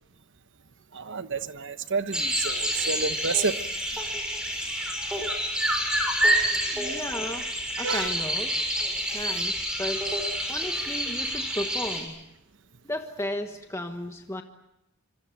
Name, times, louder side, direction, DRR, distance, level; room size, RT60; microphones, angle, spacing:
voice 1, 0.9-3.6 6.3-6.4 7.7-8.1, right 5 dB, 55° right, 11 dB, 1.2 m, -29 dB
sound 1, 2.1-12.0, equal, 5° right, 6.5 m, -28 dB
voice 2, 6.6-8.5 9.1-10.1 10.5-12.2 12.8-14.4, left 1 dB, 10° left, 5 dB, 1.2 m, -34 dB
25.5 x 25.5 x 7.8 m, 0.86 s
head